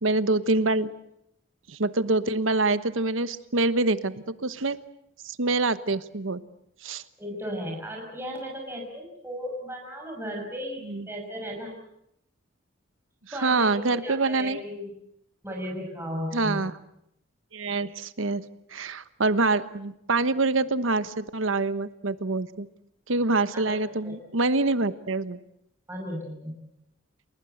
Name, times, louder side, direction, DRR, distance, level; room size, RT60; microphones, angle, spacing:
voice 1, 0.0-0.9 1.7-4.8 5.2-6.4 6.8-7.0 10.8-11.1 13.4-14.6 16.3-16.7 17.5-18.4 18.7-22.7 23.1-25.4, right 3 dB, 75° right, 14 dB, 1.2 m, -25 dB
voice 2, 7.2-11.8 13.3-14.9 15.4-16.6 23.5-24.2 25.9-26.5, equal, 10° right, 0 dB, 5.8 m, -35 dB
29.5 x 19.5 x 8.0 m, 0.79 s
head